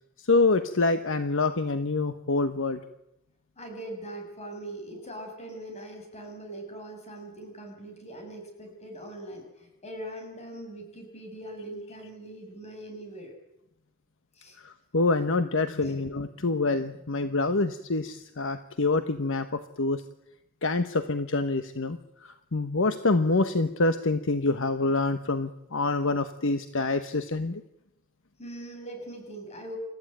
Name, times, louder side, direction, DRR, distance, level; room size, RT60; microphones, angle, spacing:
voice 1, 0.2-2.8 14.6-20.0 20.6-27.6, left 3 dB, 65° left, 10 dB, 1.1 m, -26 dB
voice 2, 3.6-13.3 14.4-14.6 15.8-16.1 28.4-29.8, right 1 dB, 30° left, 3 dB, 7.0 m, -41 dB
29.0 x 14.5 x 9.2 m, 0.87 s
head